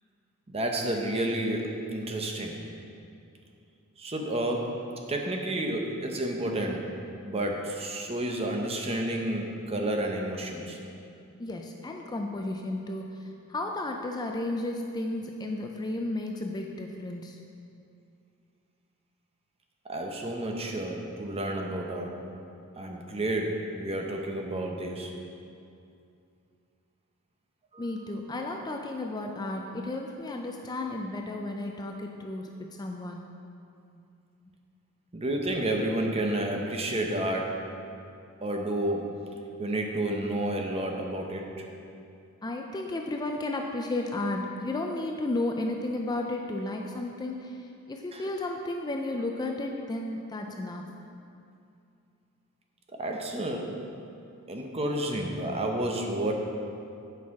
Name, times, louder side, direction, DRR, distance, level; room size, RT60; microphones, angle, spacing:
voice 1, 0.5-2.6 4.0-7.0 7.2-10.8 19.8-22.2 22.8-25.1 27.7-27.9 35.1-37.6 38.4-39.2 39.6-41.6 48.1-48.2 52.9-53.8 54.5-56.3, right 1 dB, 25° right, 2 dB, 0.8 m, -30 dB
voice 2, 11.4-17.4 27.8-33.3 42.4-50.9, left 2 dB, 20° left, 2 dB, 0.4 m, -33 dB
8.6 x 5.6 x 4.7 m, 2.6 s
head